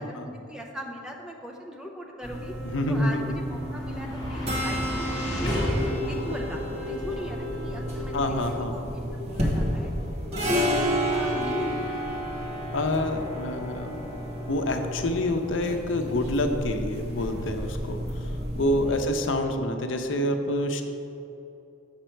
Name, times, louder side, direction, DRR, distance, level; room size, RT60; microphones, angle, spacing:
voice 1, 0.0-2.5 2.9-8.4 8.6-9.9 10.3-12.0 18.9-19.1, equal, 5° right, 0 dB, 0.6 m, -39 dB
sound 1, 2.2-19.0, equal, 30° right, 1.1 m, -31 dB
voice 2, 2.7-3.2 8.1-8.7 12.7-14.0 14.5-20.8, left 1 dB, 80° left, 5 dB, 0.6 m, -27 dB
sound 2, 3.0-15.2, left 1 dB, 20° left, 1.3 m, -35 dB
7.3 x 6.3 x 4.5 m, 2.8 s
head